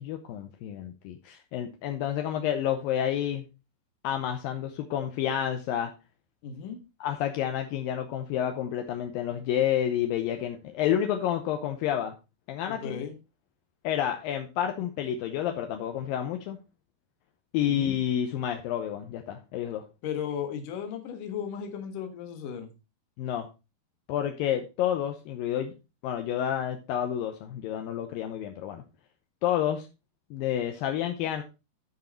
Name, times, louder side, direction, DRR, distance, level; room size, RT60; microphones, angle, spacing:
voice 1, 0.0-3.5 4.0-5.9 7.0-12.1 12.5-13.0 13.8-16.6 17.5-19.8 23.2-23.5 24.1-25.7 26.0-28.8 29.4-29.9 30.3-31.4, left 10 dB, 80° left, 5 dB, 2.1 m, -29 dB
voice 2, 6.4-6.8 12.7-13.2 17.6-17.9 20.0-22.7, left 7 dB, 60° left, 5 dB, 2.6 m, -35 dB
12.5 x 4.8 x 4.2 m, 0.28 s
omnidirectional pair, 5.0 m